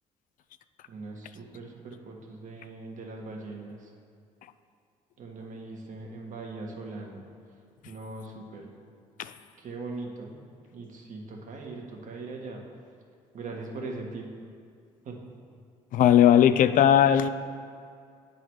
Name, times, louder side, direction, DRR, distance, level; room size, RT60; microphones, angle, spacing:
voice 1, 0.9-3.9 5.2-7.2 7.8-8.7 9.6-10.4 10.7-12.6 13.3-14.3 15.0-15.2, right 3 dB, 55° right, 0 dB, 1.5 m, -40 dB
voice 2, 15.9-17.3, left 10 dB, 60° left, 12 dB, 0.4 m, -18 dB
9.0 x 4.0 x 4.6 m, 2.3 s
supercardioid pair, 65°, 15 cm